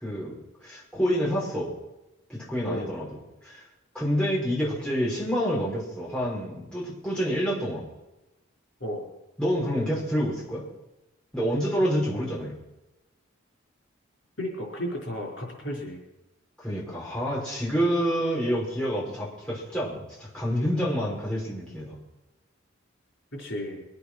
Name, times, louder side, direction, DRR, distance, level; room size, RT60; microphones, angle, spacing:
voice 1, 0.0-1.7 2.3-3.1 3.4-3.6 3.9-7.8 9.4-10.6 11.3-12.5 16.6-22.0, equal, 5° left, -7 dB, 5.8 m, -28 dB
voice 2, 14.4-16.0 23.3-23.8, equal, 60° left, -1 dB, 4.7 m, -33 dB
23.5 x 8.6 x 6.4 m, 0.98 s
head